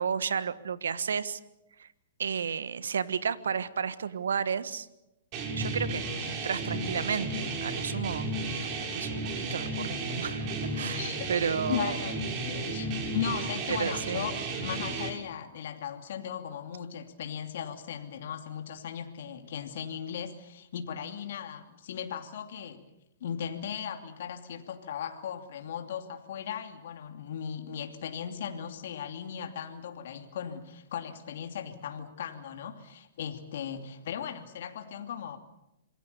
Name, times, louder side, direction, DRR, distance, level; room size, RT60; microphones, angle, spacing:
voice 1, 0.0-1.4 1.8-1.9 2.2-4.9 5.5-11.0 11.3-12.0 13.7-14.3, right 6 dB, 75° right, 15 dB, 1.5 m, -32 dB
sound 1, 5.3-15.1, right 2 dB, 40° right, 6.1 m, -33 dB
voice 2, 11.0-12.2 12.5-22.9 23.2-35.4, left 8 dB, 65° left, 6 dB, 2.7 m, -37 dB
27.0 x 22.5 x 6.9 m, 0.89 s
hypercardioid pair, 120°, 0 cm